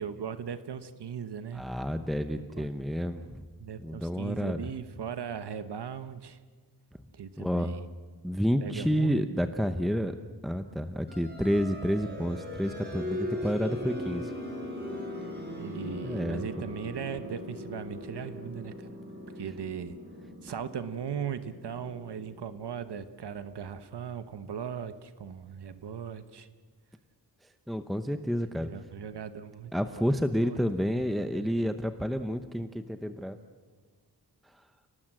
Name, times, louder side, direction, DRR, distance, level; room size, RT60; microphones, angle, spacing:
voice 1, 0.0-1.6 2.4-2.7 3.6-6.4 7.1-7.8 8.6-9.3 15.6-18.9 19.4-20.0 20.4-26.5 28.4-29.7 30.4-30.6 31.4-31.5, right 7 dB, 80° right, 11 dB, 1.2 m, -38 dB
voice 2, 1.5-3.4 3.8-4.7 7.4-7.8 8.2-10.1 10.4-14.3 16.0-16.4 27.7-28.7 29.7-33.4, equal, ahead, 8 dB, 0.8 m, -30 dB
sound 1, 11.1-23.6, left 1 dB, 25° right, 6.9 m, -40 dB
29.5 x 19.0 x 7.7 m, 1.5 s
wide cardioid pair, 135°, 40 cm